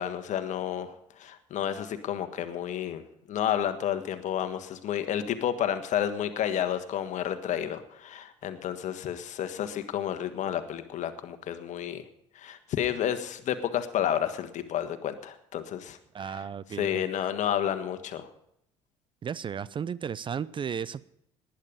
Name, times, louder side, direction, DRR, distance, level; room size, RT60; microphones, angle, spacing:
voice 1, 0.0-12.0 12.3-16.4 16.8-18.3, left 10 dB, 50° left, 1.5 m, -31 dB
voice 2, 16.1-17.0 19.2-21.0, right 7 dB, 30° right, 0.5 m, -34 dB
19.0 x 10.5 x 5.2 m
hypercardioid pair, 55°, 16 cm